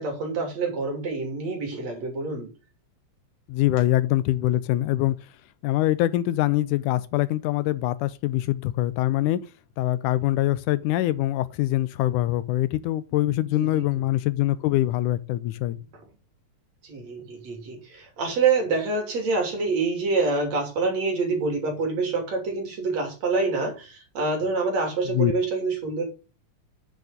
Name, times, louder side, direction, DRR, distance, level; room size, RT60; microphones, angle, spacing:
voice 1, 0.0-2.5 13.5-13.9 15.7-15.8 16.8-26.0, right 4 dB, 60° right, 4.1 m, -26 dB
voice 2, 3.5-5.2 5.6-9.4 9.8-15.8 25.1-25.3, left 15 dB, 90° left, 2.2 m, -24 dB
8.9 x 6.7 x 4.9 m
omnidirectional pair, 3.5 m